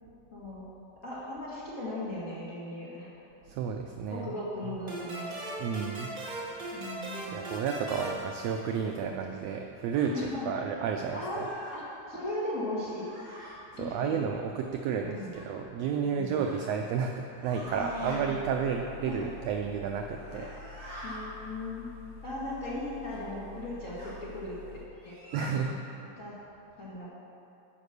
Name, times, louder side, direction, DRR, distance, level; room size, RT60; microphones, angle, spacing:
voice 1, 0.3-0.6 1.0-3.1 4.1-5.3 6.7-7.5 10.1-10.5 11.1-11.4 11.7-11.8 12.1-13.1 13.8-14.1 15.0-15.3 16.0-16.4 17.7-18.3 19.0-19.3 20.3-20.6 21.0-21.9 22.2-24.6 25.0-25.1 25.5-25.6 26.2-26.4 26.8-27.1, left 1 dB, 35° left, -9 dB, 1.5 m, -37 dB
voice 2, 3.5-4.3 4.6-4.8 5.6-6.5 7.3-11.5 13.7-20.5 25.3-25.8, right 6 dB, 80° right, 3 dB, 1.5 m, -32 dB
sound 1, 4.9-9.2, right 2 dB, 55° right, 0.5 m, -39 dB
sound 2, 9.9-10.1 11.0-11.8 12.9-13.5 15.3-15.5 16.4-16.6 17.3-18.2 20.0-21.2 23.1-23.2 23.9-24.1 25.0-25.5, equal, 35° right, 2.9 m, -46 dB
sound 3, 17.6-24.8, left 4 dB, 70° left, 1.9 m, -48 dB
9.9 x 5.0 x 6.6 m, 2.8 s
omnidirectional pair, 3.4 m